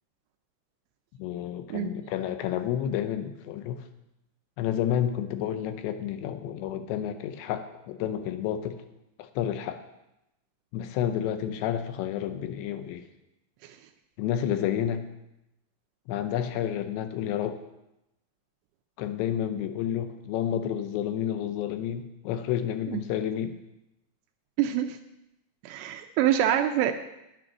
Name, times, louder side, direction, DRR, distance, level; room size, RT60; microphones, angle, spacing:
voice 1, 1.2-3.8 4.6-8.8 9.2-9.8 10.7-13.1 14.2-15.0 16.1-17.6 19.0-23.6, left 10 dB, 80° left, 8 dB, 2.8 m, -30 dB
voice 2, 24.6-25.0 25.6-26.9, right 11 dB, 80° right, 7 dB, 2.6 m, -25 dB
10.5 x 9.0 x 6.1 m, 0.90 s
omnidirectional pair, 5.4 m